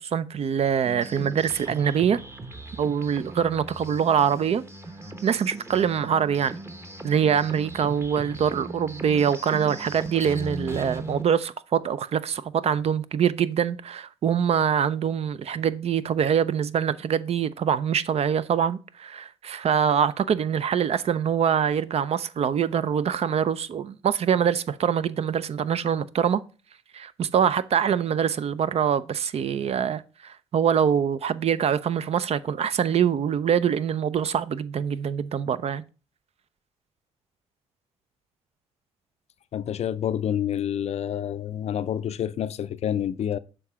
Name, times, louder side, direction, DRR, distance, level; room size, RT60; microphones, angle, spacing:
voice 1, 0.0-2.2 2.8-4.6 5.2-6.6 7.0-26.4 26.9-35.8, right 8 dB, 50° right, 0.5 m, -24 dB
sound 1, 0.8-11.2, right 2 dB, 20° right, 1.0 m, -39 dB
voice 2, 39.5-43.4, left 9 dB, 50° left, 0.4 m, -28 dB
6.7 x 3.7 x 5.6 m
hypercardioid pair, 50°, 14 cm